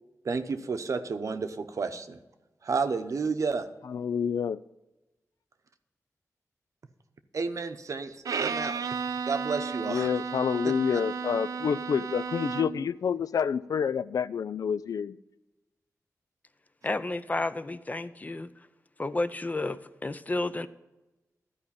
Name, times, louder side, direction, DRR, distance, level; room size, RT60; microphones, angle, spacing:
voice 1, 0.2-2.2 2.6-3.7 7.3-8.8 9.2-10.1, right 4 dB, 65° right, 0.8 m, -31 dB
voice 2, 3.8-4.6 9.8-15.2, left 7 dB, 85° left, 0.3 m, -28 dB
Bowed string instrument, 8.2-12.9, right 5 dB, 80° right, 0.5 m, -33 dB
voice 3, 16.8-18.5 19.0-20.7, left 2 dB, 25° left, 0.5 m, -31 dB
13.0 x 5.0 x 8.5 m
wide cardioid pair, 110°, 6 cm